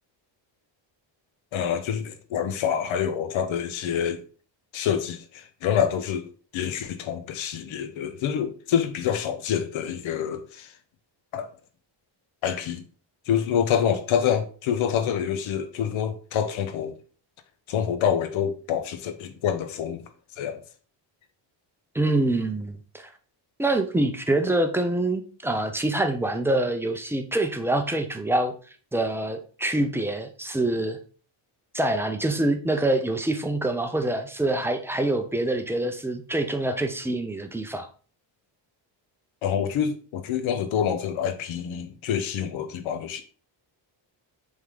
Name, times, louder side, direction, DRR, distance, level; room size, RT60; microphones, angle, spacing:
voice 1, 1.5-4.2 4.7-10.8 11.3-11.5 12.4-12.8 13.3-17.0 17.7-20.0 20.3-20.6 39.4-43.2, left 8 dB, 85° left, 0.9 m, -27 dB
voice 2, 21.9-23.1 23.6-28.5 28.9-31.0 31.7-37.9, right 2 dB, 5° right, 0.3 m, -25 dB
7.6 x 3.5 x 3.7 m
cardioid pair, 175°, 47 cm